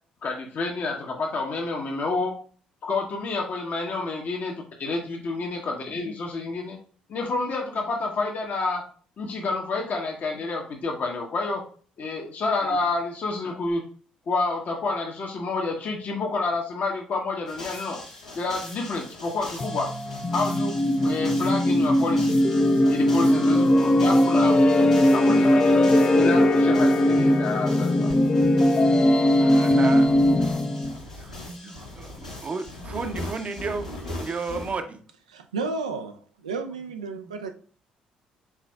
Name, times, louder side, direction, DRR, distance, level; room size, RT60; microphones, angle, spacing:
voice 1, 0.2-2.4 2.8-6.8 7.1-8.8 9.2-11.6 12.0-13.8 14.3-18.0 18.3-19.9 20.3-22.4 22.9-25.8 26.1-28.1, left 3 dB, 45° left, 0.9 m, -29 dB
sound 1, 17.5-34.7, left 1 dB, 90° left, 1.1 m, -41 dB
sound 2, 19.6-31.0, left 1 dB, 25° left, 0.5 m, -20 dB
voice 2, 28.5-30.1 30.9-33.9 34.2-35.0 37.2-37.3, right 4 dB, 35° right, 0.7 m, -34 dB
voice 3, 35.3-37.5, right 4 dB, 80° right, 0.4 m, -32 dB
5.9 x 4.1 x 2.2 m
figure-of-eight pair, 45°, 4 cm